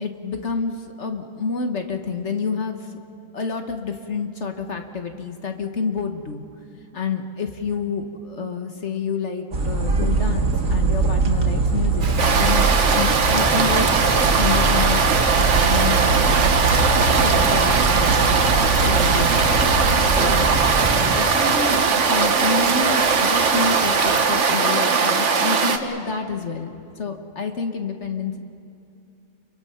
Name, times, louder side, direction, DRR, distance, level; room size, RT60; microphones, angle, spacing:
voice 1, 0.0-2.8 3.3-6.4 6.9-12.1 12.4-12.7 13.0-14.1 14.4-15.0 15.3-16.1 16.8-18.4 18.8-19.6 20.1-20.5 21.1-28.4, left 5 dB, 60° left, 5 dB, 1.6 m, -28 dB
sound 1, 9.5-21.1, right 3 dB, 80° right, 2.3 m, -22 dB
Rain, 12.0-24.3, right 5 dB, 40° right, 1.0 m, -33 dB
sound 2, 12.2-25.8, right 5 dB, 65° right, 1.5 m, -19 dB
29.5 x 24.0 x 5.8 m, 2.6 s
omnidirectional pair, 1.4 m